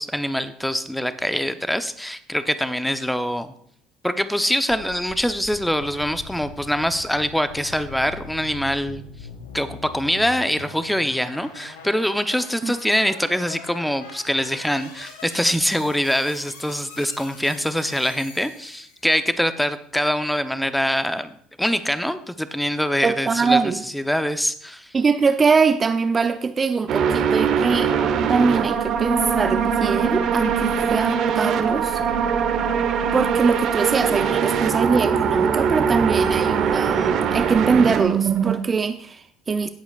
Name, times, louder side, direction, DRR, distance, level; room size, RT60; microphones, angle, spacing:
voice 1, 0.0-3.5 4.0-9.0 9.5-23.6 23.9-24.9, equal, 5° left, 0.8 m, -24 dB
sound 1, 4.7-19.1, left 4 dB, 75° left, 1.8 m, -42 dB
voice 2, 23.0-23.8 24.9-27.9 28.3-32.0 33.1-39.7, right 5 dB, 30° right, 0.6 m, -22 dB
sound 2, 26.9-38.6, right 7 dB, 50° right, 1.2 m, -22 dB
17.0 x 8.3 x 2.5 m
hypercardioid pair, 65°, 0 cm